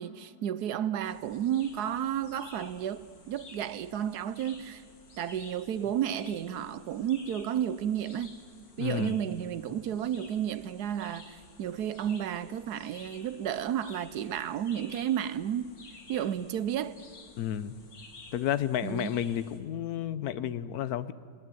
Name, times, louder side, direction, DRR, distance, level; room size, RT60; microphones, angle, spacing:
voice 1, 0.0-4.8 5.2-8.3 8.8-15.7 16.1-17.0 18.8-19.1, right 10 dB, 70° right, 1.2 m, -32 dB
sound 1, 1.0-19.6, left 3 dB, 85° left, 3.0 m, -53 dB
voice 2, 8.8-9.2 17.4-17.8 18.3-21.1, left 10 dB, 65° left, 1.1 m, -31 dB
20.0 x 17.0 x 9.2 m
omnidirectional pair, 1.9 m